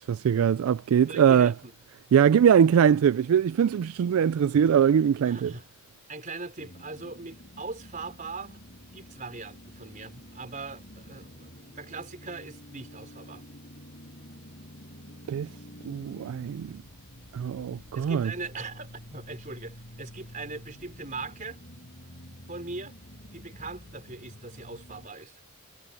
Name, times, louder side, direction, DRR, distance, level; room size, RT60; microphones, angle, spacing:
voice 1, 0.1-1.5 2.1-5.5 15.3-15.5 15.8-16.8 17.3-18.3, right 8 dB, 70° right, 0.3 m, -22 dB
voice 2, 1.1-1.7 5.2-5.7 6.1-8.6 8.9-13.4 17.9-21.6 22.5-23.0 23.3-25.3, right 3 dB, 35° right, 4.4 m, -40 dB
sound 1, 6.6-25.1, equal, 45° left, 5.9 m, -49 dB
head